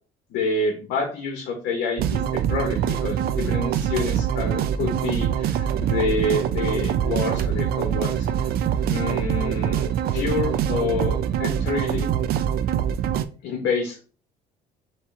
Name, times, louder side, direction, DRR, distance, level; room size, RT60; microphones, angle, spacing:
voice 1, 0.3-8.3 8.9-12.1 13.4-14.0, left 3 dB, 80° left, 2 dB, 1.0 m, -28 dB
sound 1, 2.0-13.2, right 9 dB, 65° right, 0.4 m, -24 dB
3.6 x 3.1 x 4.2 m, 0.38 s
cardioid pair, 110°, 17 cm